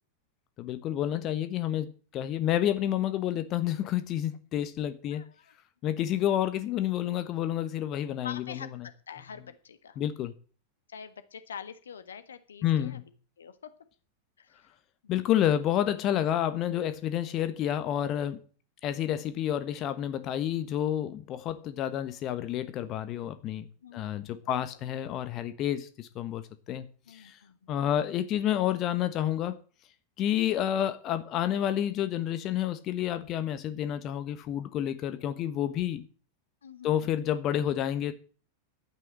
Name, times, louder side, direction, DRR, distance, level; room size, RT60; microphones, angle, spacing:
voice 1, 0.6-5.2 5.8-8.7 10.0-10.3 12.6-13.0 15.1-18.4 18.8-23.7 23.9-26.4 26.7-27.3 27.7-29.6 30.2-36.0 36.8-38.1, left 11 dB, 35° left, 1.2 m, -29 dB
voice 2, 5.0-5.5 8.2-10.0 10.9-13.0 13.4-13.8 14.4-14.7 15.0-15.3 23.8-24.6 27.1-27.7 36.6-37.1, left 7 dB, 65° left, 1.3 m, -46 dB
11.5 x 9.1 x 7.7 m
figure-of-eight pair, 90°, 0 cm